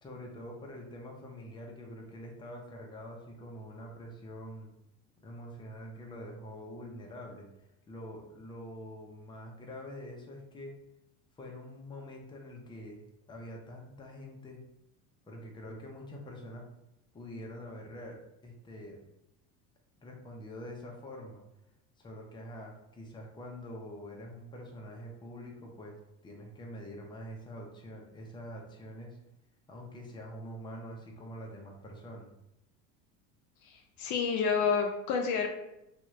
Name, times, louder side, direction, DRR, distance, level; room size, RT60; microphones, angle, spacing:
voice 1, 0.0-4.7 5.2-7.5 7.9-10.7 11.4-13.0 13.3-14.6 15.3-16.7 17.1-19.0 20.0-21.4 22.0-26.0 26.2-29.2 29.7-32.3, equal, 15° left, -1 dB, 0.6 m, -45 dB
voice 2, 33.7-35.5, left 6 dB, 55° left, 3 dB, 0.5 m, -29 dB
2.9 x 2.3 x 3.0 m, 0.89 s
supercardioid pair, 110°, 35 cm